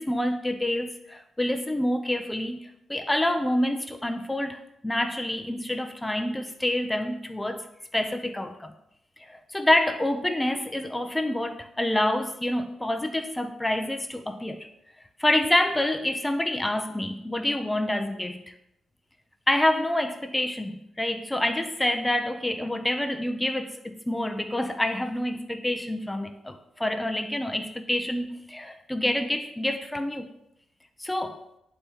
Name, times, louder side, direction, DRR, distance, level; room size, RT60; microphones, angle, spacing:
voice 1, 0.0-2.6 2.9-7.7 7.9-8.7 9.2-14.7 15.2-18.5 19.5-30.3 31.0-31.4, left 1 dB, 10° left, 7 dB, 0.4 m, -27 dB
9.8 x 4.2 x 3.5 m, 0.80 s
wide cardioid pair, 145°, 0 cm